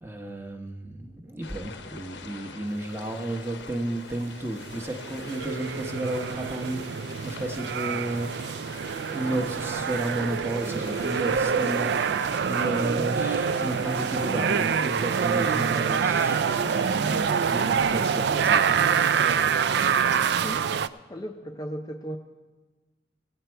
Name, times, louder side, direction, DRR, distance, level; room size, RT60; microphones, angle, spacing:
voice 1, 0.0-6.8 7.2-8.3 8.6-8.7 9.1-12.0 12.4-18.8 19.4-19.6, right 1 dB, 15° right, 4 dB, 0.9 m, -32 dB
sound 1, 1.4-20.6, left 4 dB, 80° left, 0.8 m, -44 dB
sound 2, 4.8-20.9, right 6 dB, 65° right, 0.3 m, -26 dB
voice 2, 20.3-20.6 21.1-22.2, equal, 20° left, 4 dB, 0.5 m, -36 dB
18.0 x 8.1 x 4.5 m, 1.3 s
head